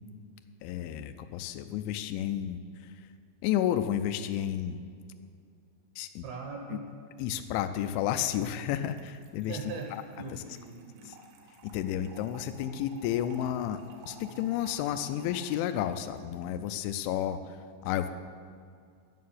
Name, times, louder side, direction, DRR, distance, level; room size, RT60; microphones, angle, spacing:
voice 1, 0.6-2.6 3.4-4.8 6.0-6.3 6.7-6.8 7.2-10.0 10.3-10.4 11.1-11.2 11.7-13.8 14.1-17.6 17.8-18.1, left 11 dB, 85° left, 8 dB, 2.8 m, -31 dB
voice 2, 6.2-6.9 9.5-11.2, right 4 dB, 70° right, 1 dB, 2.5 m, -40 dB
Trickle dribble / Fill (with liquid), 8.9-16.2, right 2 dB, 85° right, 3.8 m, -53 dB
11.5 x 6.7 x 9.4 m, 2.2 s
omnidirectional pair, 5.5 m